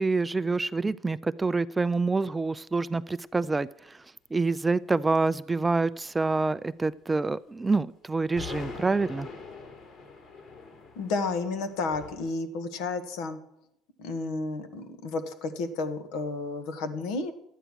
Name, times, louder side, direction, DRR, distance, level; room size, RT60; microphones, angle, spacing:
voice 1, 0.0-3.7 4.3-9.3, right 3 dB, 15° right, 16 dB, 0.4 m, -27 dB
sound 1, 8.4-12.3, left 4 dB, 50° left, 3.1 m, -43 dB
voice 2, 10.9-13.4 14.0-17.3, left 3 dB, 75° left, 8 dB, 1.6 m, -32 dB
12.0 x 9.2 x 6.3 m, 0.80 s
supercardioid pair, 90°, 0 cm